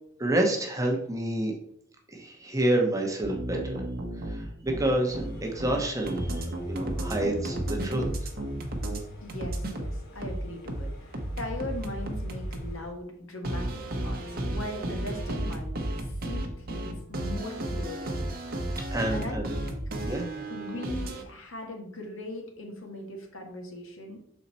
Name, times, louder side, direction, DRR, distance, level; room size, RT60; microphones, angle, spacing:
voice 1, 0.2-1.5 2.1-3.8 4.3-8.0 18.9-19.5 20.1-20.5, right 1 dB, 15° right, 1 dB, 0.9 m, -28 dB
sound 1, 3.2-9.0 9.3-12.7 13.4-21.2, right 1 dB, 45° right, 0.9 m, -33 dB
sound 2, 4.9-12.9, equal, 50° left, 2.1 m, -49 dB
voice 2, 9.2-13.7 13.9-18.2 19.1-19.4 20.5-24.2, left 1 dB, 75° left, 2 dB, 1.5 m, -39 dB
6.5 x 4.3 x 4.1 m, 0.71 s
head